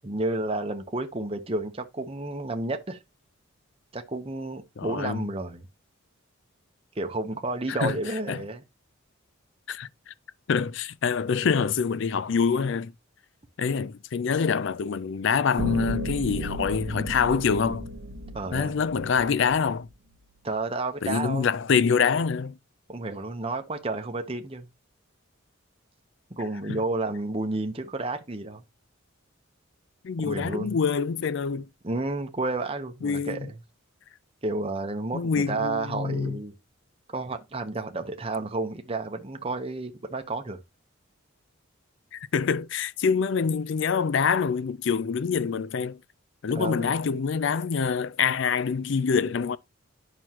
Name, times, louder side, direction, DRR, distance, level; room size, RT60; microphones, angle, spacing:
voice 1, 0.0-3.0 3.9-5.7 7.0-8.6 18.3-18.8 20.4-21.5 22.9-24.7 26.3-28.6 30.2-30.8 31.8-33.6 34.4-36.5 37.1-40.6 46.6-47.0, right 2 dB, 25° right, 0.8 m, -31 dB
voice 2, 4.8-5.3 7.7-8.0 8.3-8.4 9.7-10.1 10.5-12.9 13.6-17.9 18.5-19.9 21.0-22.6 30.0-31.7 33.0-33.5 35.1-36.4 42.1-46.0 46.4-49.6, left 6 dB, 60° left, 0.4 m, -25 dB
sound 1, 15.6-19.9, right 1 dB, 75° right, 0.9 m, -34 dB
9.3 x 6.1 x 2.9 m
head